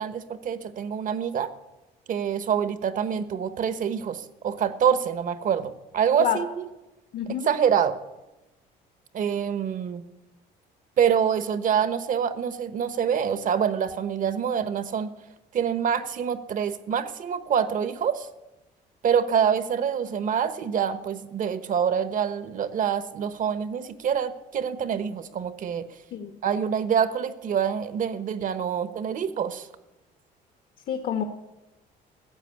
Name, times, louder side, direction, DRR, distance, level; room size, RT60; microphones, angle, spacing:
voice 1, 0.0-1.5 2.1-6.6 7.5-8.0 9.1-10.0 11.0-15.1 15.5-18.3 19.0-25.9 26.4-29.7, right 8 dB, 50° right, 13 dB, 1.1 m, -26 dB
voice 2, 7.1-7.5 26.1-26.4 30.9-31.2, left 9 dB, 60° left, 6 dB, 1.2 m, -28 dB
15.0 x 7.5 x 10.0 m, 1.0 s
cardioid pair, 110°, 17 cm